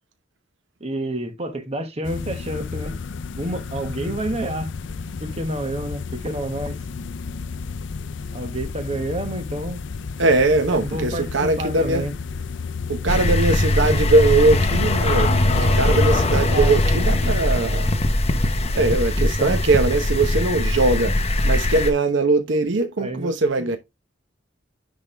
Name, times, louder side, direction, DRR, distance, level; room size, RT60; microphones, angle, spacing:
voice 1, 0.8-3.0 3.4-4.7 5.2-6.8 8.3-9.8 10.6-12.1 15.5-16.7 19.2-19.6 23.0-23.8, right 1 dB, 30° right, 1.5 m, -29 dB
sound 1, 2.0-17.4, left 5 dB, 65° left, 0.5 m, -31 dB
voice 2, 10.2-12.1 12.9-17.9 18.7-21.2 21.4-23.8, right 2 dB, 70° right, 0.9 m, -20 dB
sound 2, 13.1-21.9, left 1 dB, 30° left, 0.9 m, -21 dB
10.0 x 3.6 x 3.4 m
head